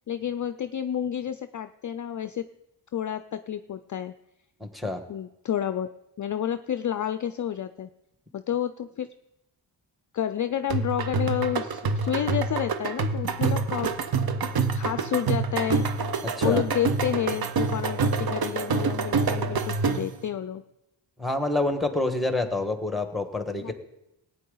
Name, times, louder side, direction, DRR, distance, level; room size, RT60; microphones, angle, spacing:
voice 1, 0.1-2.5 2.9-4.1 5.1-5.9 6.2-7.9 8.3-9.1 10.1-14.1 14.6-15.9 16.4-20.6 23.6-23.7, left 9 dB, 45° left, 11 dB, 0.4 m, -30 dB
voice 2, 4.6-5.0 16.4-16.6 21.2-23.7, left 2 dB, ahead, 6 dB, 1.4 m, -27 dB
sound 1, 10.7-20.2, right 4 dB, 55° right, 0.8 m, -27 dB
17.0 x 9.2 x 3.9 m, 0.87 s
wide cardioid pair, 100°, 45 cm